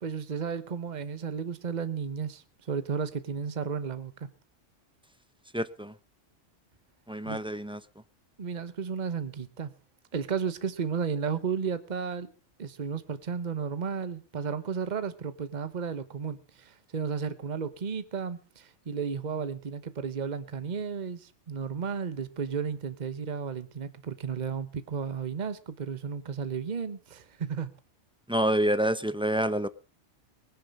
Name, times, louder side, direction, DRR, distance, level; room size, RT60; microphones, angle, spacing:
voice 1, 0.0-4.3 7.2-7.4 8.4-9.7 10.1-12.3 12.6-27.8, right 6 dB, 40° right, 1.1 m, -33 dB
voice 2, 5.5-5.9 7.1-7.8 28.3-29.7, right 1 dB, 5° right, 0.5 m, -27 dB
20.0 x 10.5 x 5.3 m
omnidirectional pair, 1.2 m